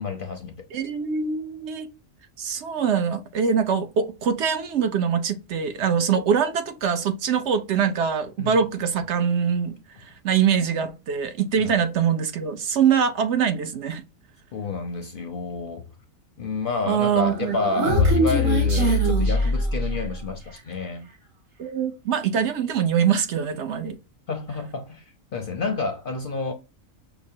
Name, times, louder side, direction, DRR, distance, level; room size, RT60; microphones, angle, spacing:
voice 1, 0.0-0.5 8.4-8.6 11.6-11.7 14.5-15.9 16.4-21.1 24.3-26.5, left 4 dB, 60° left, 0.6 m, -29 dB
voice 2, 0.7-1.9 2.4-14.0 16.9-17.9 21.6-24.0, right 7 dB, 65° right, 0.8 m, -23 dB
Human voice, 17.3-20.2, equal, 85° right, 1.9 m, -22 dB
5.9 x 2.0 x 2.6 m
omnidirectional pair, 1.4 m